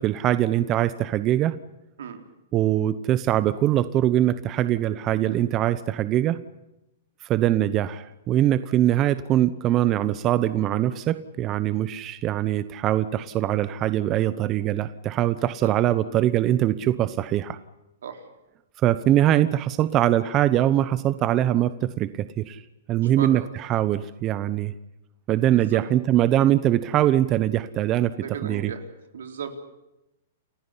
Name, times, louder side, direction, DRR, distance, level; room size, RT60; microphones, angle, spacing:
voice 1, 0.0-1.5 2.5-6.4 7.3-17.6 18.8-22.6 22.9-24.7 25.3-28.1 28.4-28.7, right 12 dB, 30° right, 14 dB, 0.9 m, -22 dB
voice 2, 23.0-23.4 25.5-25.8 28.2-28.8 29.1-29.6, right 6 dB, 80° right, 7 dB, 4.2 m, -35 dB
29.5 x 15.5 x 9.9 m, 0.92 s
hypercardioid pair, 150°, 0 cm